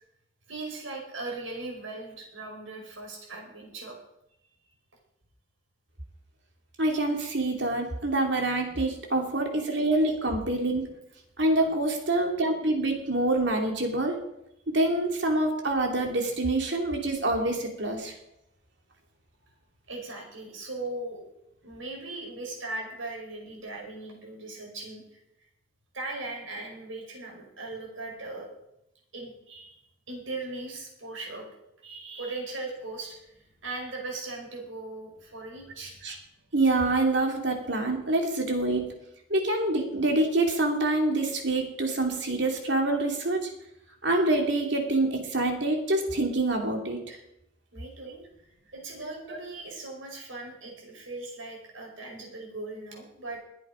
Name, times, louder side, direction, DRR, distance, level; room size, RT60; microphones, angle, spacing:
voice 1, 0.5-4.0 19.9-21.2 21.6-25.0 25.9-28.5 29.1-29.8 30.1-31.5 31.8-33.3 33.6-36.0 47.7-48.2 48.7-53.4, right 2 dB, 75° right, 0 dB, 5.3 m, -39 dB
voice 2, 6.8-10.9 11.4-14.2 14.7-18.1 36.0-36.2 36.5-38.9 39.3-43.5 44.0-47.2 49.3-49.4, right 2 dB, 60° right, 2 dB, 2.9 m, -26 dB
22.0 x 8.3 x 5.1 m, 0.82 s
head